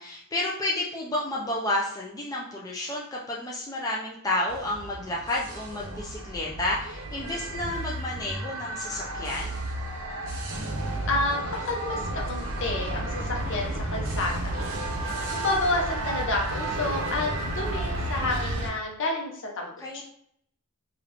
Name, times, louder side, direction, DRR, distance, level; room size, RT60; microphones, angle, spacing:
voice 1, 0.0-9.6 19.8-20.0, left 1 dB, 15° left, -4 dB, 0.4 m, -31 dB
sound 1, 4.5-18.7, right 1 dB, 60° right, 0.7 m, -32 dB
voice 2, 11.1-14.7 15.0-20.0, left 2 dB, 55° left, 0 dB, 0.8 m, -30 dB
3.3 x 2.4 x 3.1 m, 0.67 s
head